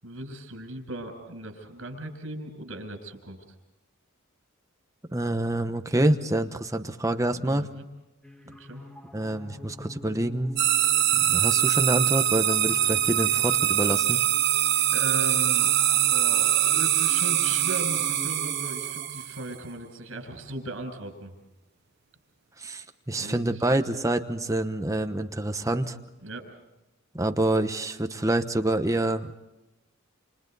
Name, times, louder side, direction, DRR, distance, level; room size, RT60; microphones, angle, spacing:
voice 1, 0.0-3.6 7.5-7.8 8.4-8.8 14.9-21.4 23.1-23.8 26.2-26.4, right 1 dB, 70° right, 6 dB, 7.5 m, -38 dB
voice 2, 5.1-7.7 9.1-10.5 11.3-14.2 22.6-26.0 27.1-29.3, right 1 dB, 15° right, 8 dB, 1.0 m, -27 dB
sound 1, 8.2-19.1, left 2 dB, 5° left, 1.8 m, -45 dB
sound 2, 10.6-19.5, right 12 dB, 50° right, 1.1 m, -23 dB
29.5 x 29.0 x 4.1 m, 1.0 s
head